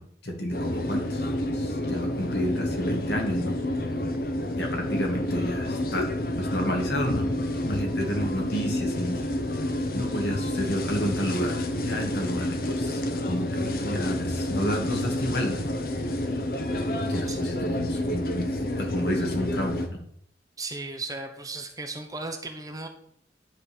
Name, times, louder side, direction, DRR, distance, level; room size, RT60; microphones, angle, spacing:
voice 1, 0.0-3.5 4.6-6.1 6.4-7.3 7.6-9.2 9.9-15.6 17.0-20.0, equal, 70° left, 1 dB, 2.1 m, -31 dB
sound 1, 0.5-19.9, left 1 dB, 55° left, 0.9 m, -29 dB
voice 2, 20.6-22.9, right 3 dB, 20° right, 4 dB, 1.0 m, -35 dB
10.5 x 4.0 x 6.9 m, 0.66 s
head